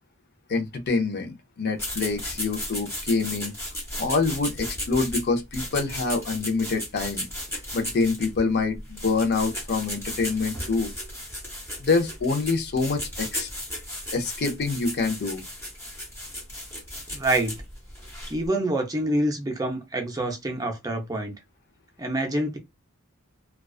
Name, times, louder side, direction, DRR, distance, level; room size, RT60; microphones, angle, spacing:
voice 1, 0.5-3.5 4.0-7.3 7.7-10.9 11.8-13.5 14.1-15.4, left 4 dB, 50° left, 0.5 m, -26 dB
sound 1, 1.8-18.5, left 1 dB, 10° left, 0.8 m, -35 dB
voice 2, 17.1-17.6 18.3-21.4 22.0-22.6, right 1 dB, 15° right, 0.5 m, -26 dB
2.3 x 2.2 x 2.3 m
head